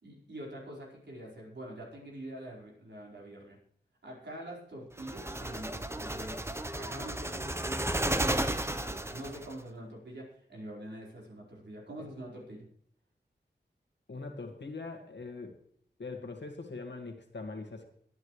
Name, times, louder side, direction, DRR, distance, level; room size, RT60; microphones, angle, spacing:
voice 1, 0.0-3.6 4.0-6.5 6.7-12.7, right 1 dB, 75° right, -3 dB, 4.9 m, -45 dB
sound 1, 5.0-9.5, right 1 dB, 15° right, 0.9 m, -33 dB
voice 2, 14.1-15.6 16.0-17.9, left 3 dB, 75° left, 4 dB, 2.0 m, -42 dB
22.5 x 9.2 x 3.3 m, 0.64 s
wide cardioid pair, 55°, 18 cm